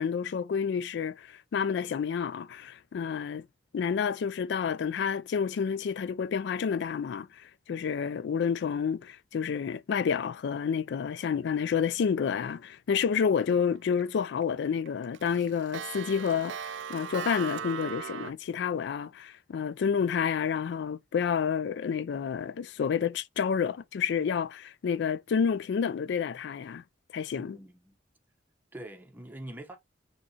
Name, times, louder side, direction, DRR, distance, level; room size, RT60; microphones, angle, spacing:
voice 1, 0.0-3.5 3.7-26.8 27.1-27.6, left 6 dB, 65° left, 0.3 m, -29 dB
Clock, 13.5-14.0 14.4-14.5 14.8-18.3, right 8 dB, 75° right, 0.3 m, -38 dB
voice 2, 27.3-28.0 28.7-29.8, right 1 dB, 10° right, 0.9 m, -44 dB
6.1 x 3.1 x 2.8 m
head